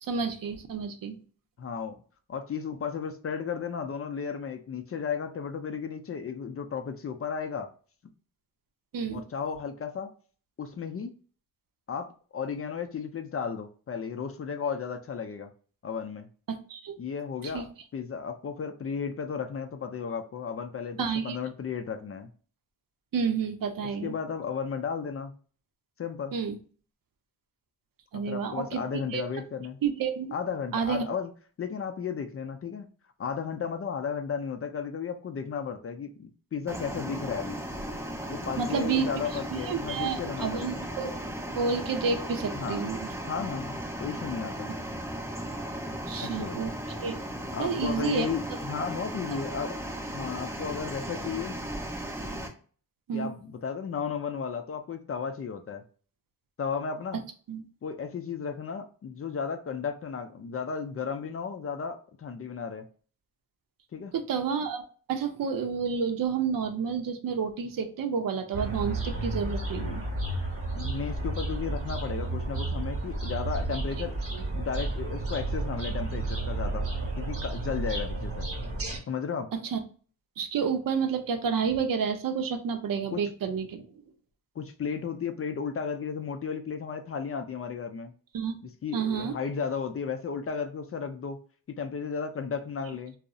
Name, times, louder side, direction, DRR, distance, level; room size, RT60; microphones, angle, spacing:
voice 1, 0.0-1.2 8.9-9.2 16.5-16.9 17.4-17.6 21.0-21.4 23.1-24.1 26.3-26.6 28.1-28.8 29.1-29.2 29.8-30.4 30.7-31.1 38.6-39.1 39.5-41.1 41.5-43.0 46.1-46.7 47.0-47.2 47.6-48.3 48.8-48.9 53.1-53.3 57.5-57.6 64.1-64.8 65.1-70.0 74.3-74.4 79.5-79.8 80.4-83.9 88.3-88.6 88.9-89.3, right 6 dB, 65° right, 0.6 m, -30 dB
voice 2, 1.6-2.0 2.3-7.7 9.1-10.1 10.6-11.1 11.9-15.5 15.8-16.3 17.0-22.3 24.0-25.3 26.0-26.3 28.3-29.8 30.3-31.3 31.6-32.9 33.2-37.6 38.3-40.8 42.5-42.8 43.3-44.7 46.2-46.6 47.5-49.8 50.1-51.6 53.1-55.8 56.6-57.2 57.8-62.9 63.9-64.1 70.7-74.2 74.5-76.9 77.2-78.5 79.1-79.5 83.1-83.2 84.6-88.1 88.8-91.4 91.7-93.1, left 6 dB, 40° left, 0.4 m, -34 dB
sound 1, 36.7-52.5, right 1 dB, 5° right, 0.6 m, -36 dB
sound 2, 68.5-79.0, right 2 dB, 40° right, 1.0 m, -32 dB
2.6 x 2.0 x 2.3 m
cardioid pair, 70°, 36 cm